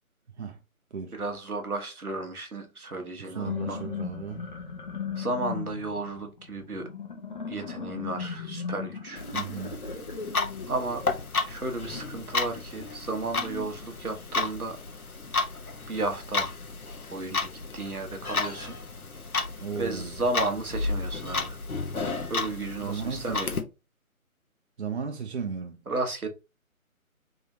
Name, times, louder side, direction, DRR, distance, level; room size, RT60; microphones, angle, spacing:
voice 1, 1.1-3.8 5.2-6.9 7.5-9.3 10.7-11.0 11.4-14.8 15.9-16.5 17.1-18.8 19.7-21.6 22.3-23.6 25.9-26.3, right 2 dB, 85° right, 1.2 m, -33 dB
sound 1, 3.2-11.1, left 6 dB, 35° left, 0.9 m, -37 dB
voice 2, 3.3-4.5 9.3-9.8 19.6-20.2 22.8-23.4 24.8-25.8, right 6 dB, 50° right, 0.6 m, -35 dB
Clock, 9.2-23.6, left 3 dB, 85° left, 0.9 m, -33 dB
3.6 x 3.2 x 2.7 m
figure-of-eight pair, 145°, 43 cm